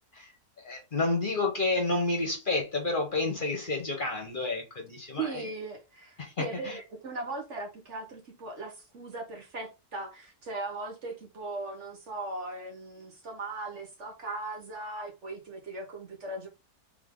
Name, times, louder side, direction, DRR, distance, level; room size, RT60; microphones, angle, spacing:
voice 1, 0.6-5.4 6.2-6.8, left 2 dB, 40° left, 1.0 m, -30 dB
voice 2, 5.2-16.5, right 3 dB, 55° right, 1.2 m, -38 dB
3.6 x 3.4 x 3.7 m
omnidirectional pair, 1.6 m